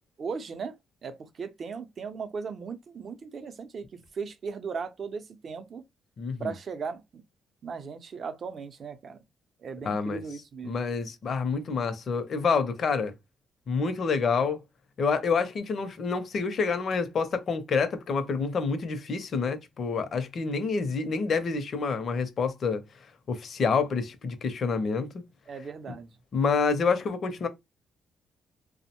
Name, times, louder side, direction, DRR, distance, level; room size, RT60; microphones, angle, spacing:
voice 1, 0.2-0.8 1.0-5.8 6.4-7.2 7.6-9.2 9.6-10.8 25.5-26.1, right 5 dB, 50° right, 0.5 m, -37 dB
voice 2, 6.2-6.5 9.8-10.2 10.6-13.1 13.7-14.6 15.0-22.8 23.3-25.2 26.3-27.5, left 5 dB, 55° left, 0.5 m, -28 dB
2.6 x 2.0 x 2.8 m
cardioid pair, 90°, 0 cm